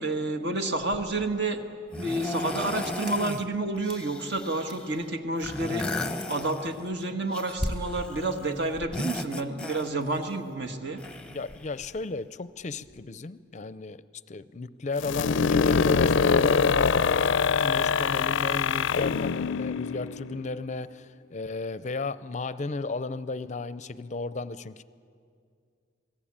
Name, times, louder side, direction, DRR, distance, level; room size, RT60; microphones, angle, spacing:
voice 1, 0.0-1.6 1.9-5.9 6.3-11.0, right 2 dB, 60° right, 6 dB, 1.6 m, -30 dB
sound 1, 0.9-1.3 1.9-3.5 3.8-4.9 5.4-6.9 7.3-8.4 8.7-10.2 11.0-12.0 12.9-13.0, left 2 dB, 5° left, 0.8 m, -35 dB
sound 2, 3.0-3.2 3.6-4.0 4.4-5.7 6.1-6.5 6.9-7.0 7.6-8.0, right 3 dB, 25° right, 4.2 m, -49 dB
voice 2, 11.3-14.0 14.3-17.3 17.6-24.8, left 3 dB, 40° left, 15 dB, 0.5 m, -34 dB
sound 3, 15.0-20.7, left 5 dB, 85° left, 0.5 m, -24 dB
26.5 x 18.0 x 8.7 m, 2.3 s
head